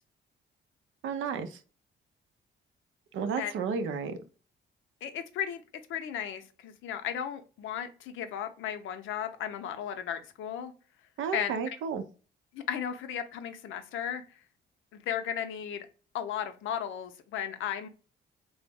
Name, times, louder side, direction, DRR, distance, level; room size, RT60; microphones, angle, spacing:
voice 1, 1.0-1.6 3.1-4.2 11.2-12.0, right 6 dB, 80° right, 0.5 m, -32 dB
voice 2, 5.0-5.6 5.9-10.7 11.3-11.5 12.5-14.2 14.9-15.9 16.1-17.9, left 9 dB, 80° left, 0.5 m, -35 dB
3.1 x 2.0 x 3.4 m
cardioid pair, 90°, 20 cm